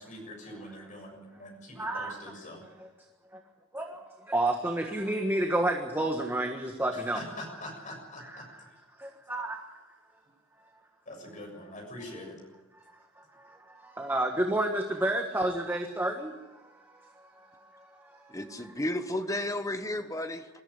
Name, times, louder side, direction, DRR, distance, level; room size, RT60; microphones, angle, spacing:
voice 1, 0.0-2.6 6.9-8.7 11.1-12.4, left 1 dB, 40° left, 6.9 m, -44 dB
voice 2, 1.8-2.2 3.7-4.0 4.3-7.2 8.3-8.4 9.3-9.6 14.0-16.3, right 1 dB, 10° right, 1.5 m, -29 dB
voice 3, 18.3-20.5, left 1 dB, 15° left, 1.1 m, -33 dB
21.5 x 14.0 x 10.0 m
head